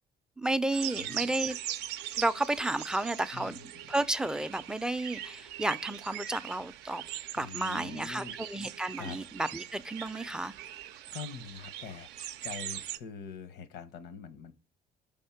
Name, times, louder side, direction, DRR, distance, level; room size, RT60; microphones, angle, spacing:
voice 1, 0.4-1.6 2.2-3.6 3.9-7.0 7.3-10.5, right 2 dB, 5° right, 0.3 m, -32 dB
sound 1, 0.7-13.0, right 12 dB, 90° right, 0.5 m, -41 dB
voice 2, 0.9-1.3 3.3-3.9 7.4-8.4 9.0-9.2 11.1-12.1 12.4-14.5, left 6 dB, 85° left, 0.9 m, -44 dB
5.2 x 3.6 x 5.7 m
cardioid pair, 110°, 17 cm